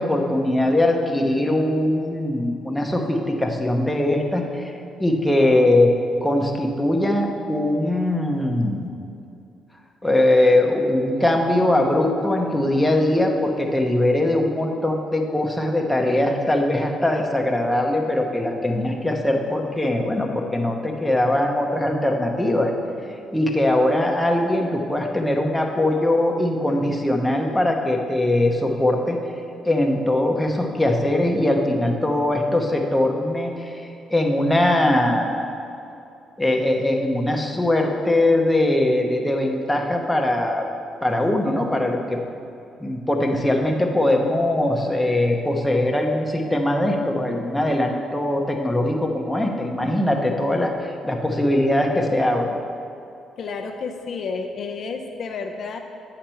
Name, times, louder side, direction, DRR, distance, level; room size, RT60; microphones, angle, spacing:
voice 1, 0.0-4.7 5.0-5.9 6.2-8.9 10.0-22.7 23.3-29.2 29.6-35.6 36.4-40.7 41.0-42.2 42.8-52.5, left 1 dB, 5° left, 1 dB, 0.9 m, -21 dB
voice 2, 53.4-55.8, left 4 dB, 60° left, 4 dB, 0.5 m, -31 dB
8.4 x 5.9 x 4.5 m, 2.6 s
cardioid pair, 90°, 0 cm